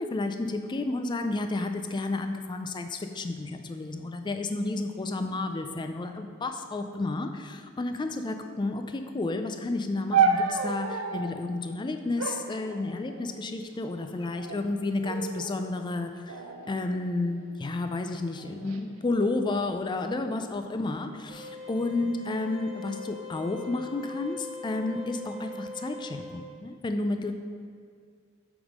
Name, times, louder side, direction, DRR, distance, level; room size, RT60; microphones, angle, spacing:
voice 1, 0.0-16.4 16.7-27.3, left 2 dB, 20° left, 6 dB, 0.3 m, -31 dB
sound 1, 10.1-11.4 12.2-13.4 14.2-14.7 15.0-15.6 16.3-17.6 18.3-18.8, right 5 dB, 70° right, 0.5 m, -30 dB
sound 2, 21.3-26.4, left 3 dB, 30° right, 1.7 m, -41 dB
7.9 x 3.6 x 5.0 m, 2.2 s
head